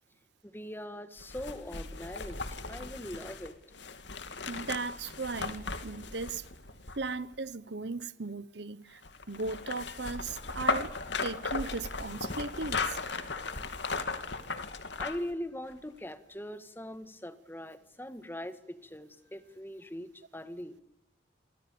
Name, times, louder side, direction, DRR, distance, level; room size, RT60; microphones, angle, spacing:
voice 1, 0.4-3.5 15.0-20.8, left 1 dB, 10° left, 1.7 m, -41 dB
sound 1, 1.2-7.4 9.0-15.3 15.7-15.8, left 4 dB, 65° left, 2.6 m, -37 dB
voice 2, 4.5-6.4 6.9-9.0 9.3-10.9 11.2-13.0, right 3 dB, 60° right, 1.0 m, -37 dB
29.5 x 25.0 x 6.9 m
head